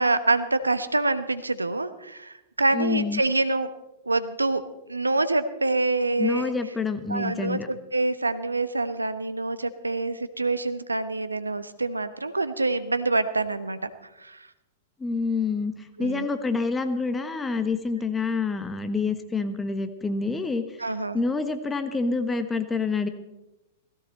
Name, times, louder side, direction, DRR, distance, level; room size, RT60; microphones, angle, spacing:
voice 1, 0.0-3.7 4.0-4.6 4.9-6.5 7.1-13.9 14.2-14.5 16.0-16.3 20.8-21.2, right 2 dB, 90° right, 12 dB, 1.0 m, -26 dB
voice 2, 2.7-3.2 6.2-7.7 15.0-20.8 21.1-23.1, left 4 dB, 15° left, 8 dB, 1.3 m, -27 dB
17.5 x 16.0 x 4.1 m, 0.96 s
figure-of-eight pair, 105°, 0 cm